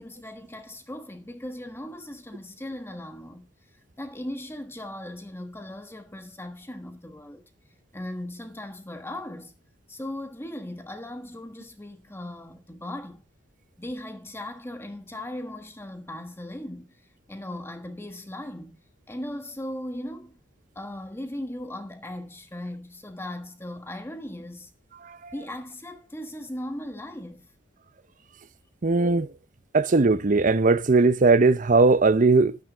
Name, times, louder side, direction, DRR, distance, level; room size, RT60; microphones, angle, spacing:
voice 1, 0.0-3.5 4.0-7.4 7.9-9.5 9.9-13.2 13.8-17.0 17.3-18.8 19.1-20.4 20.7-24.7 25.3-27.5, left 1 dB, 15° left, 1.3 m, -38 dB
voice 2, 28.8-29.3 29.7-32.6, right 3 dB, 45° right, 0.7 m, -19 dB
12.5 x 9.3 x 5.0 m
head